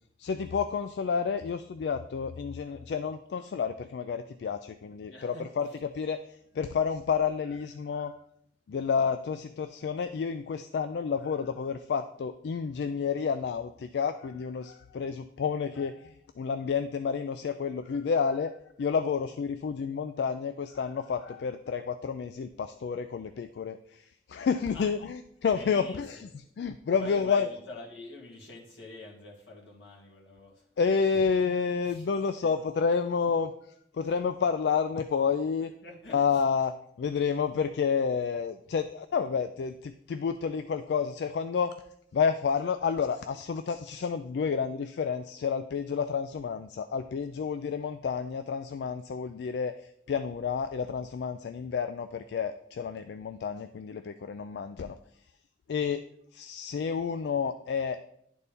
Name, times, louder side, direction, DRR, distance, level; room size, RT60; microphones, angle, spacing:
voice 1, 0.2-6.2 6.6-8.1 8.7-18.5 18.8-23.8 24.3-26.3 26.6-27.5 30.8-33.5 34.0-35.7 36.1-36.7 37.0-41.7 42.1-49.7 50.1-55.0 55.7-56.0 56.3-58.1, left 6 dB, 70° left, 10 dB, 0.3 m, -30 dB
voice 2, 5.1-5.8 24.7-24.9 25.5-26.3 27.0-30.7 31.1-31.3 31.9-32.5 34.0-34.1 35.8-36.7, left 2 dB, 90° left, -3 dB, 2.0 m, -47 dB
10.5 x 4.2 x 3.4 m, 0.70 s
head